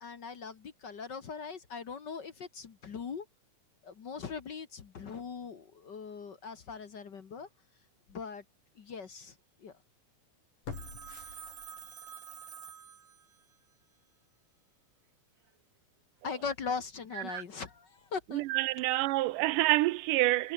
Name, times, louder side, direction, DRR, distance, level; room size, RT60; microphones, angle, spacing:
voice 1, 0.0-3.2 3.8-7.5 8.1-8.4 8.8-9.3 9.6-9.7 16.2-18.4, left 5 dB, 45° left, 1.5 m, -40 dB
sound 1, 7.4-7.5 8.1-8.2 10.6-12.1 12.5-12.6, left 5 dB, 80° left, 6.7 m, -46 dB
Telephone, 10.7-13.6, right 7 dB, 65° right, 0.8 m, -48 dB
voice 2, 18.3-20.5, right 18 dB, 85° right, 2.3 m, -28 dB
omnidirectional pair, 3.7 m